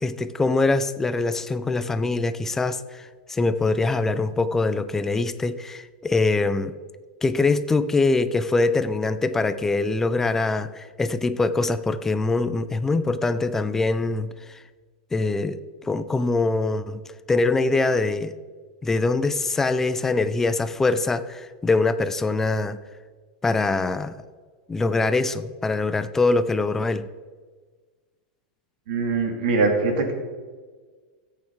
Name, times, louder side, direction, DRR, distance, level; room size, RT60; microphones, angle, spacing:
voice 1, 0.0-6.7 7.2-14.6 15.1-17.0 17.3-18.3 18.8-22.8 23.4-24.1 24.7-27.1, left 3 dB, 10° left, 12 dB, 0.4 m, -23 dB
voice 2, 28.9-30.1, right 3 dB, 65° right, 4 dB, 2.5 m, -22 dB
14.0 x 8.6 x 4.6 m, 1.5 s
supercardioid pair, 165°, 5 cm